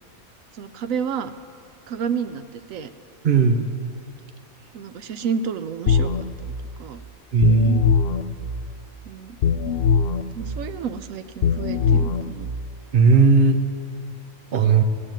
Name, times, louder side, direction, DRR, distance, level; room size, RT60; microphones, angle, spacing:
voice 1, 0.5-1.3 1.9-2.9 4.7-6.5 6.8-7.0 9.1-9.7 10.3-12.5, right 6 dB, 75° right, 11 dB, 1.0 m, -30 dB
voice 2, 3.2-3.6 7.3-7.9 12.9-13.6 14.5-14.8, right 4 dB, 45° right, 7 dB, 0.9 m, -16 dB
sound 1, 5.9-6.2 7.4-8.2 9.4-10.2 11.4-12.2, left 6 dB, 60° left, 0.7 m, -20 dB
16.5 x 6.5 x 9.1 m, 2.6 s
omnidirectional pair, 1.5 m